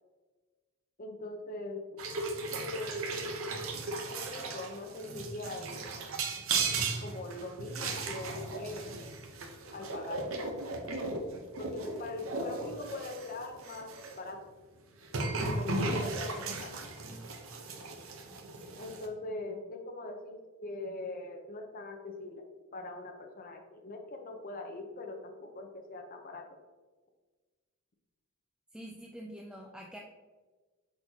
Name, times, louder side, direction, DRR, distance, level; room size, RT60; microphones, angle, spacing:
voice 1, 1.0-1.9 2.6-3.4 4.1-5.9 7.0-8.9 9.7-10.4 11.6-14.4 15.5-16.8 18.8-22.4 22.7-26.6, left 2 dB, 45° left, 3 dB, 0.7 m, -41 dB
sound 1, 2.0-14.2 15.0-19.1, right 3 dB, 80° right, 0.8 m, -36 dB
voice 2, 28.7-30.0, equal, 5° right, 1 dB, 0.4 m, -46 dB
8.2 x 4.4 x 2.8 m, 1.3 s
head